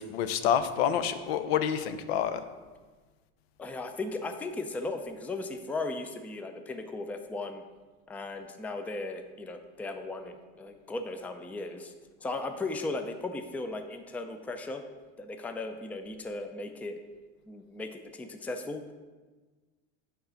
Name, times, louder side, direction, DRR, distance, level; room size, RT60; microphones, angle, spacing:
voice 1, 0.0-2.4, left 9 dB, 85° left, 10 dB, 0.6 m, -28 dB
voice 2, 3.6-7.6 8.1-11.9 12.2-14.8 15.2-17.0 17.5-18.8, left 2 dB, 5° left, 7 dB, 0.3 m, -37 dB
6.6 x 4.0 x 5.6 m, 1.3 s
supercardioid pair, 125°, 30 cm